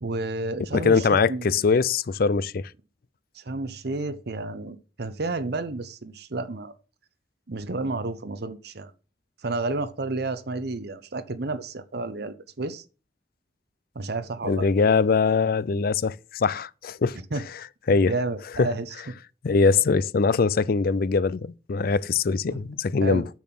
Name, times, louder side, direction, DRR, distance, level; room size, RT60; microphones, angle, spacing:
voice 1, 0.0-1.5 3.3-6.7 7.5-8.9 9.4-12.8 13.9-14.6 17.3-17.4 18.0-18.9 23.0-23.3, right 2 dB, 60° right, 0.8 m, -31 dB
voice 2, 0.7-2.7 14.4-17.2 17.9-18.1 18.6-18.7 19.4-23.2, left 4 dB, 55° left, 0.4 m, -22 dB
7.1 x 6.1 x 7.6 m
head